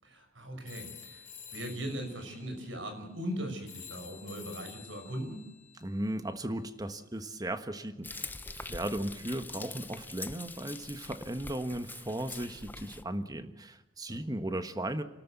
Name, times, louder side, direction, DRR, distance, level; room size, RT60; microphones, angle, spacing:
voice 1, 0.0-5.5 14.1-14.2, equal, 85° right, 6 dB, 6.3 m, -39 dB
sound 1, 0.7-6.8, left 8 dB, 40° left, 4.0 m, -51 dB
voice 2, 5.8-15.0, right 1 dB, 20° right, 10 dB, 1.4 m, -36 dB
Frying (food), 8.0-13.0, left 3 dB, 10° left, 0.8 m, -44 dB
29.5 x 13.5 x 8.1 m, 0.95 s
head